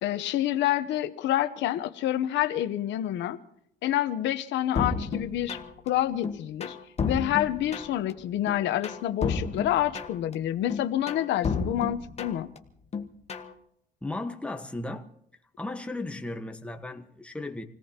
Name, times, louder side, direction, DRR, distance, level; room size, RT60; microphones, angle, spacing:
voice 1, 0.0-3.4 3.8-5.6 5.9-6.8 7.0-12.5, left 12 dB, 85° left, 1.0 m, -28 dB
sound 1, 4.8-5.9 6.2-8.1 8.5-10.3 10.7-12.6 12.9-13.5, left 5 dB, 35° left, 1.5 m, -32 dB
voice 2, 14.0-15.0 15.6-17.6, left 2 dB, 5° left, 1.3 m, -35 dB
27.5 x 18.0 x 2.9 m
cardioid pair, 120°, 18 cm